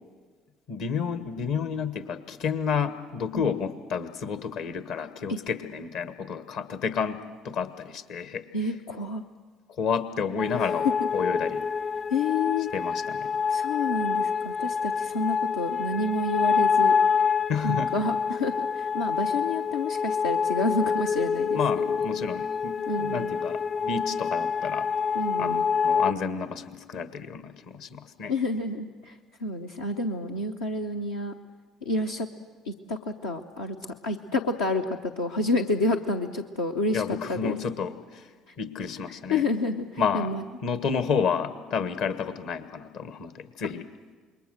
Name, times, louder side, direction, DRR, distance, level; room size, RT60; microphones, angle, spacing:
voice 1, 0.7-8.5 9.8-10.9 11.1-11.7 12.7-13.3 17.5-18.0 21.5-24.9 25.4-28.3 36.9-38.3 38.6-39.4 40.0-40.3 40.6-43.9, left 6 dB, 65° left, 11 dB, 1.4 m, -30 dB
voice 2, 8.5-9.2 10.6-10.7 12.1-12.7 13.5-16.9 17.6-21.6 22.9-23.3 25.1-25.6 28.3-31.3 31.8-32.3 32.6-33.8 34.0-37.6 38.5-38.6 39.3-40.4, left 2 dB, 85° left, 0 dB, 0.8 m, -29 dB
sound 1, 10.4-26.1, left 6 dB, 50° left, 0.6 m, -27 dB
27.5 x 22.0 x 6.4 m, 1.4 s
hypercardioid pair, 55°, 0 cm